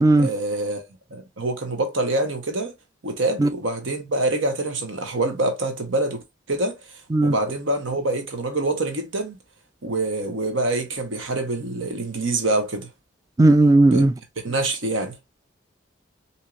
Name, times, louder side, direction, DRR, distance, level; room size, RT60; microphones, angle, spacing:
voice 1, 0.2-0.8 1.1-2.7 3.0-6.8 7.2-9.4 9.8-12.9 13.8-14.1 14.4-15.2, right 2 dB, 75° right, 1.1 m, -25 dB
voice 2, 13.4-14.1, right 2 dB, 20° right, 0.4 m, -15 dB
4.4 x 2.8 x 2.4 m
head